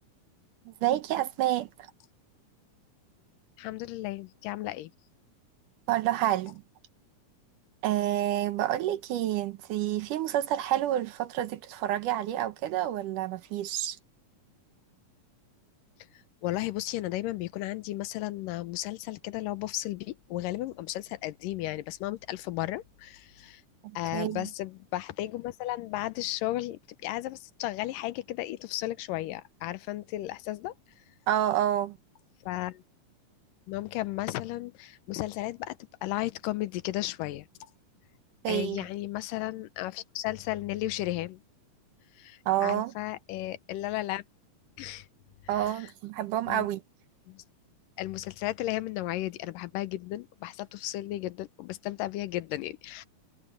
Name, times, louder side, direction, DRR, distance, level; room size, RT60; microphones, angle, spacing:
voice 1, 0.7-1.7 5.9-6.6 7.8-14.0 23.8-24.5 31.3-32.0 38.4-38.8 42.5-42.9 45.5-46.8, right 12 dB, 75° right, 2.6 m, -28 dB
voice 2, 3.6-4.9 16.1-23.6 24.0-30.7 32.5-32.8 33.7-37.5 38.5-41.4 42.2-44.2 44.8-45.1 45.5-45.9 46.5-46.7 47.3-47.4 48.0-53.1, left 16 dB, 85° left, 2.5 m, -34 dB
omnidirectional pair, 3.7 m